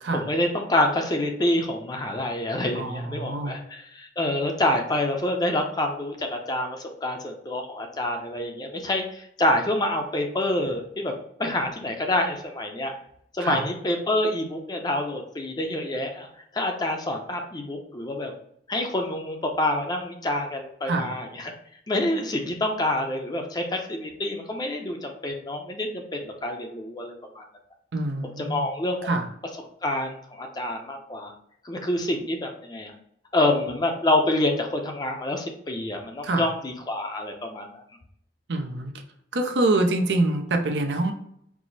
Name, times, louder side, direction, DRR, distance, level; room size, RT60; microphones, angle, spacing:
voice 1, 0.1-11.1 11.4-12.9 13.3-16.3 16.5-18.3 18.7-21.5 21.9-27.4 28.4-29.1 29.8-31.3 31.6-32.9 33.3-37.8, left 1 dB, 25° left, 3 dB, 0.5 m, -27 dB
voice 2, 2.7-3.6 13.4-13.7 20.9-21.1 27.9-28.7 29.1-29.3 36.2-36.5 38.5-38.9 39.3-41.1, right 2 dB, 80° right, 4 dB, 0.6 m, -25 dB
4.7 x 2.0 x 3.9 m, 0.72 s
head